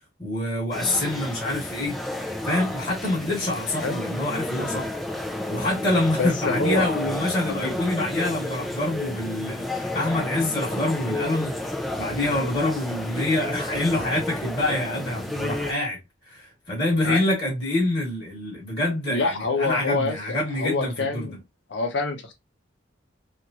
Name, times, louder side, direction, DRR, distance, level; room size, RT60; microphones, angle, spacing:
voice 1, 0.2-2.0 2.4-4.9 5.5-11.5 12.0-16.0 16.3-21.4, left 1 dB, 35° left, 1.2 m, -26 dB
sound 1, 0.7-15.7, left 1 dB, ahead, 0.3 m, -31 dB
voice 2, 6.2-7.0 7.6-7.8 17.0-17.2 19.1-20.2 20.6-21.4 21.7-22.3, left 3 dB, 65° left, 0.7 m, -26 dB
3.0 x 2.5 x 2.4 m
head